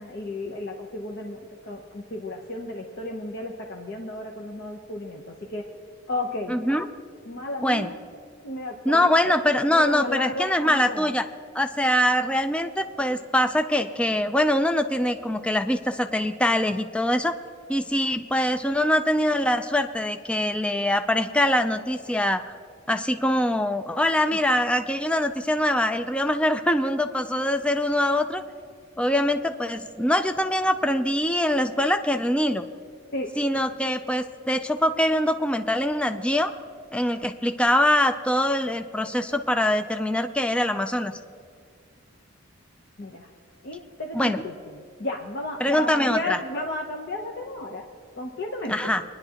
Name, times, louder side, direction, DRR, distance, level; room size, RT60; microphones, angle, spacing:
voice 1, 0.0-5.6 6.1-6.6 7.3-8.0 8.4-9.4 9.7-11.1 24.3-24.4 33.1-33.3 43.0-43.3 43.6-47.9 48.2-48.9, left 2 dB, 55° left, 0 dB, 0.8 m, -33 dB
voice 2, 6.5-6.9 7.6-7.9 8.9-11.3 11.5-17.3 17.7-22.4 22.9-28.4 29.0-32.6 33.4-36.5 36.9-41.2 44.1-44.4 45.6-46.4 48.7-49.0, left 1 dB, 5° left, 8 dB, 0.4 m, -23 dB
22.0 x 10.5 x 2.9 m, 2.1 s
head